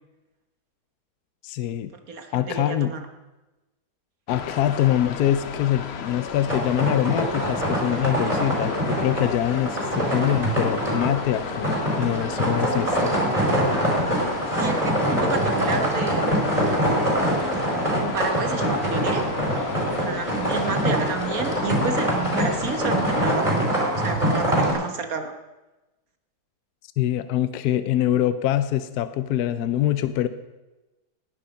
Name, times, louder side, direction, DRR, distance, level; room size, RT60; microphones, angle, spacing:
voice 1, 1.4-1.9 2.3-2.9 4.3-13.1 27.0-30.3, left 12 dB, 75° left, 12 dB, 1.2 m, -24 dB
voice 2, 2.1-3.0 14.6-16.8 17.9-19.3 20.0-23.7 23.9-25.3, right 5 dB, 60° right, 6 dB, 1.6 m, -31 dB
sound 1, 4.3-23.4, left 6 dB, 50° left, 1.0 m, -34 dB
sound 2, 6.5-24.7, right 1 dB, 20° right, 4.4 m, -24 dB
19.0 x 10.0 x 5.3 m, 1.1 s
omnidirectional pair, 1.7 m